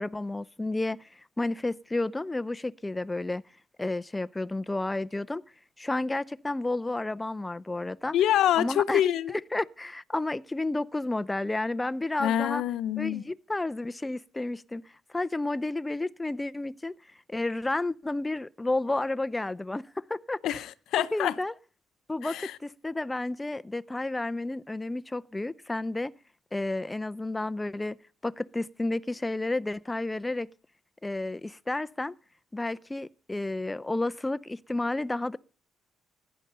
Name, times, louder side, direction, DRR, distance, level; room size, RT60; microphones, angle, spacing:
voice 1, 0.0-3.4 3.8-5.4 5.8-8.1 8.6-9.0 9.3-12.6 13.0-14.8 15.1-16.9 17.3-20.6 21.0-21.5 22.1-26.1 26.5-28.0 28.2-30.5 31.0-32.1 32.5-35.4, left 2 dB, 15° left, 0.6 m, -31 dB
voice 2, 8.1-9.3 12.2-13.2 20.4-21.3 22.2-22.6, left 11 dB, 80° left, 0.7 m, -26 dB
15.5 x 10.5 x 5.5 m
cardioid pair, 90°, 0 cm